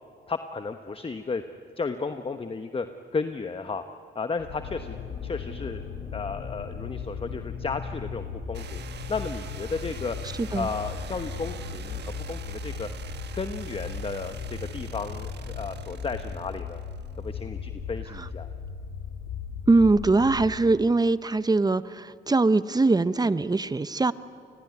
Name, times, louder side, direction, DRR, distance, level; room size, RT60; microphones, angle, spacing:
voice 1, 0.3-1.4 1.8-2.9 3.1-3.8 4.1-5.0 5.2-5.8 6.1-8.8 9.1-10.2 10.5-12.9 13.3-16.8 17.2-18.5, left 4 dB, 30° left, 8 dB, 1.2 m, -33 dB
sound 1, 4.4-20.6, left 5 dB, 90° left, 3.3 m, -37 dB
sound 2, 8.5-17.3, right 8 dB, 60° right, 1.2 m, -45 dB
voice 2, 19.7-24.1, right 3 dB, 20° right, 15 dB, 0.8 m, -22 dB
28.0 x 20.0 x 9.6 m, 2.4 s
cardioid pair, 70°, 20 cm